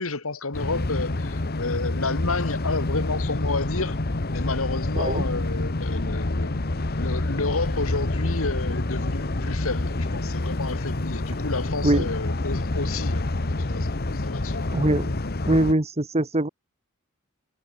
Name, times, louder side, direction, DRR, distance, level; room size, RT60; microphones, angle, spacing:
voice 1, 0.0-4.0 4.3-14.7, left 3 dB, 80° left, 2.1 m, -31 dB
sound 1, 0.5-15.7, left 2 dB, 50° left, 1.2 m, -27 dB
voice 2, 14.7-15.1 15.5-16.5, right 1 dB, 30° right, 1.4 m, -22 dB
head